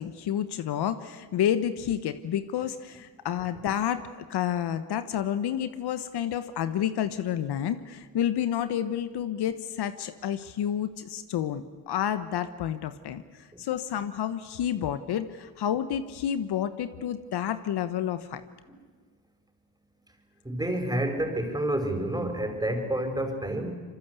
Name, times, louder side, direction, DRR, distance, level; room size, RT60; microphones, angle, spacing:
voice 1, 0.0-18.4, left 10 dB, 70° left, 12 dB, 1.3 m, -30 dB
voice 2, 20.4-23.7, right 1 dB, 10° right, 5 dB, 5.4 m, -29 dB
25.5 x 23.5 x 8.3 m, 1.5 s
supercardioid pair, 65°, 40 cm